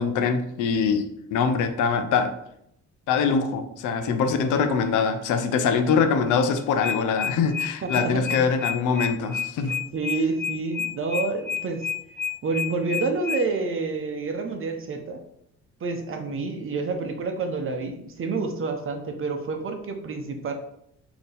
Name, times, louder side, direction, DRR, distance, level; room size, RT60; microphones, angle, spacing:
voice 1, 0.0-2.3 3.1-9.8, left 5 dB, 80° left, 8 dB, 0.6 m, -23 dB
sound 1, 6.8-13.4, left 7 dB, 35° left, 0.6 m, -29 dB
voice 2, 7.8-8.4 9.9-11.9 12.4-15.2 15.8-20.5, right 4 dB, 45° right, 5 dB, 0.8 m, -28 dB
4.2 x 2.9 x 3.4 m, 0.73 s
cardioid pair, 90°, 30 cm